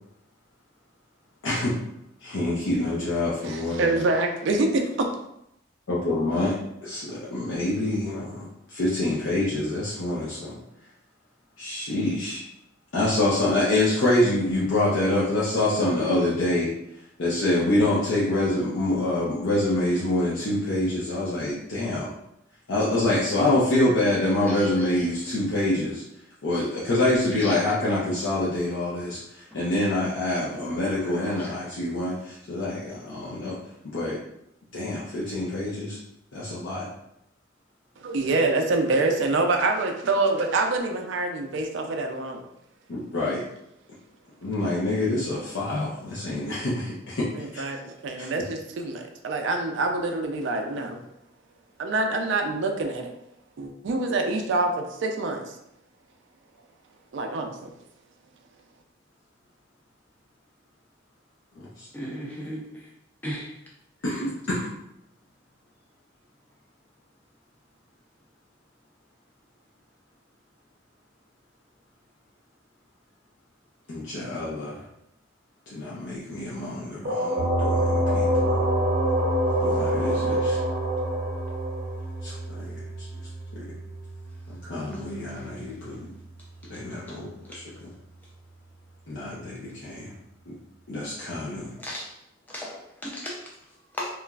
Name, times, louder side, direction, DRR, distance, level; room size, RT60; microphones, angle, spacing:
voice 1, 1.4-1.8 2.2-4.1 5.9-10.6 11.6-12.4 12.9-16.7 17.2-22.1 22.7-26.0 26.4-33.6 33.9-34.2 34.7-36.0 36.3-36.9 42.9-43.4 44.4-47.6 48.2-48.3 61.8-61.9 64.0-64.7 73.9-74.8 75.7-78.6 79.6-80.6 82.2-83.1 84.6-86.1 86.7-87.6 89.1-90.1 90.5-90.6 90.9-91.7, left 1 dB, 75° left, 0.6 m, -26 dB
voice 2, 3.4-5.1 38.0-42.4 47.4-51.0 51.8-53.1 53.6-55.5 57.1-57.7, right 2 dB, 70° right, 0.4 m, -26 dB
voice 3, 61.9-62.6 63.2-63.5 91.8-92.1 92.5-92.8 93.0-93.4 94.0-94.1, equal, 10° left, 0.4 m, -34 dB
sound 1, 77.0-82.8, equal, 55° right, 0.7 m, -26 dB
sound 2, 77.4-87.6, right 2 dB, 35° left, 1.3 m, -32 dB
2.9 x 2.4 x 2.3 m
head